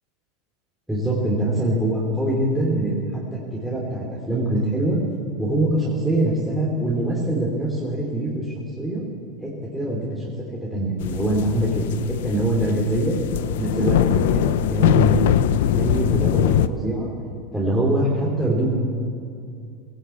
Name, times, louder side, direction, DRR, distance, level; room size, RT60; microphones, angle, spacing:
voice 1, 0.9-5.0 5.4-9.0 9.4-10.3 10.6-13.2 13.6-15.3 15.6-17.1 17.5-18.7, right 1 dB, ahead, -6 dB, 3.2 m, -23 dB
sound 1, 11.0-16.7, left 10 dB, 80° left, 0.8 m, -21 dB
20.0 x 17.0 x 8.6 m, 2.5 s
supercardioid pair, 165°, 0 cm